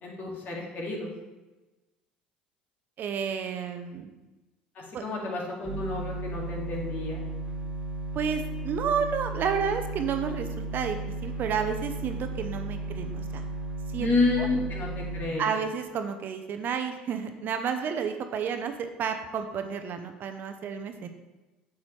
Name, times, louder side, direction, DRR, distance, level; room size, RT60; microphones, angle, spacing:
voice 1, 0.0-1.1 4.8-7.2 14.0-15.5, left 3 dB, 45° left, -1 dB, 2.3 m, -30 dB
voice 2, 3.0-4.1 4.9-5.0 8.1-13.5 13.9-14.1 14.4-14.5 15.4-21.1, right 7 dB, 50° right, 7 dB, 0.8 m, -31 dB
sound 1, 5.6-15.3, right 3 dB, 25° right, 2.1 m, -35 dB
8.1 x 7.2 x 3.3 m, 1.1 s
hypercardioid pair, 60°, 4 cm